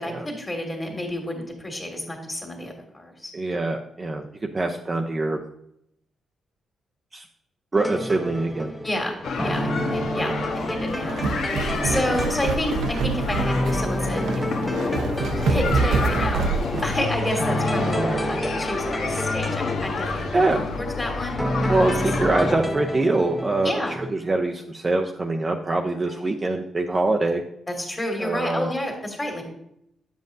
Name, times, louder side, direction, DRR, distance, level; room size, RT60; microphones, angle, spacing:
voice 1, 0.0-3.3 8.8-11.4 11.8-14.5 15.5-16.4 16.8-21.4 23.6-24.0 26.0-26.3 27.8-29.4, left 1 dB, 20° left, 2 dB, 1.9 m, -30 dB
voice 2, 3.3-5.4 7.1-7.3 7.7-8.7 10.2-10.4 11.9-12.1 17.8-18.2 20.3-20.7 21.7-27.4 28.2-28.7, right 2 dB, 25° right, 1 dB, 0.5 m, -24 dB
sound 1, 7.7-24.1, equal, ahead, 0.8 m, -30 dB
sound 2, 9.2-22.6, left 4 dB, 75° left, 1.1 m, -29 dB
sound 3, 10.9-17.0, right 4 dB, 75° right, 0.7 m, -26 dB
10.0 x 7.5 x 2.6 m, 0.77 s
cardioid pair, 140°, 0 cm